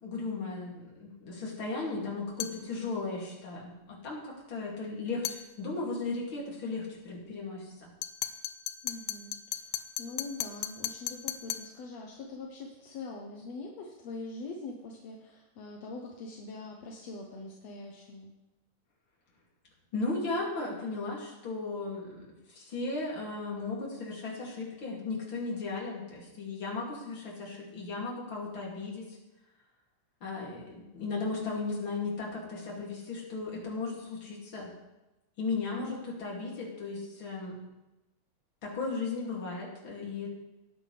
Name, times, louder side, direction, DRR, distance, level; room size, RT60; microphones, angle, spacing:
voice 1, 0.0-7.9 19.9-29.2 30.2-34.7 35.4-37.5 38.6-40.3, left 3 dB, 40° left, -3 dB, 3.1 m, -36 dB
sound 1, 2.4-2.7 5.2-5.5 8.0-11.7, left 12 dB, 90° left, 1.7 m, -36 dB
voice 2, 8.8-18.3 35.8-36.0 36.2-36.3, left 3 dB, 65° left, 0 dB, 1.8 m, -43 dB
18.5 x 8.9 x 3.4 m, 1.0 s
omnidirectional pair, 4.0 m